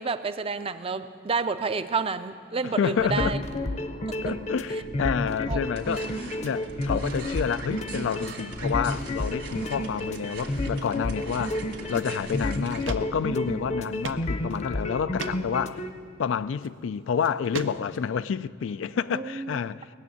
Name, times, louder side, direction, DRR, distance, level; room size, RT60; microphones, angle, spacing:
voice 1, 0.0-3.4 4.2-4.3 5.5-5.8 6.2-6.3 19.1-19.6, right 4 dB, 30° right, 0.5 m, -30 dB
voice 2, 2.6-3.4 4.2-11.6 11.9-15.9 16.2-19.9, left 7 dB, 85° left, 0.4 m, -29 dB
sound 1, 3.0-15.9, left 1 dB, 35° left, 0.7 m, -31 dB
sound 2, 5.6-12.9, right 4 dB, 65° right, 2.0 m, -43 dB
sound 3, 12.2-12.3 12.8-13.0 13.3-13.4 14.0-14.2 14.6-14.7 15.2-15.4 16.5-16.7 17.2-18.1, right 5 dB, 85° right, 0.6 m, -35 dB
18.5 x 7.1 x 9.2 m
head